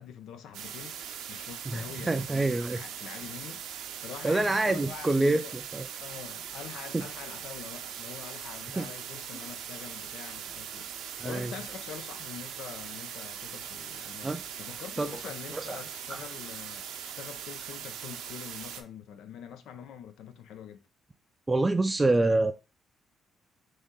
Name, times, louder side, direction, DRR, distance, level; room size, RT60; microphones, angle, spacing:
voice 1, 0.0-5.5 6.0-20.9, left 8 dB, 80° left, 0.6 m, -45 dB
sound 1, 0.5-18.8, right 9 dB, 90° right, 0.6 m, -41 dB
voice 2, 1.7-2.8 4.2-5.9 6.9-7.0 8.8-8.9 11.2-11.5 14.2-14.4 15.0-15.1 15.5-15.8 16.1-16.2 21.5-22.5, right 2 dB, 20° right, 0.4 m, -26 dB
3.9 x 3.2 x 3.7 m
cardioid pair, 90°, 0 cm